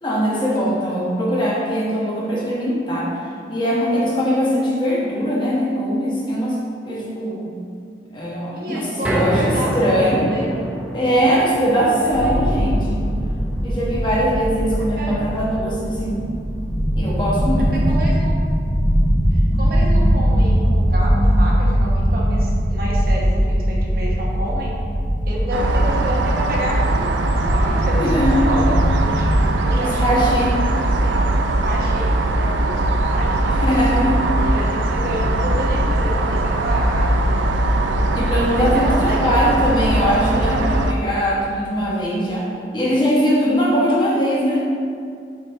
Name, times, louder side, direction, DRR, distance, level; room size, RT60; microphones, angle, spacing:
voice 1, 0.0-3.1 3.5-6.6 6.9-7.5 8.1-10.3 10.9-13.0 13.6-16.2 17.0-17.7 28.0-28.5 29.7-30.5 33.5-34.3 38.1-44.6, equal, 25° left, -6 dB, 1.1 m, -21 dB
voice 2, 8.5-10.8 12.0-12.3 15.0-15.1 17.7-18.3 19.3-24.8 25.3-30.3 31.0-31.1 31.6-33.5 34.3-37.4 38.5-40.6, right 1 dB, 55° right, -3 dB, 1.0 m, -30 dB
sound 1, 9.0-21.3 21.7-21.8 22.2-22.3, equal, 5° right, 0.6 m, -31 dB
sound 2, 12.1-29.5, equal, 55° left, 1.2 m, -20 dB
sound 3, 25.5-40.9, right 1 dB, 90° right, 0.4 m, -20 dB
6.9 x 4.7 x 3.5 m, 2.3 s
head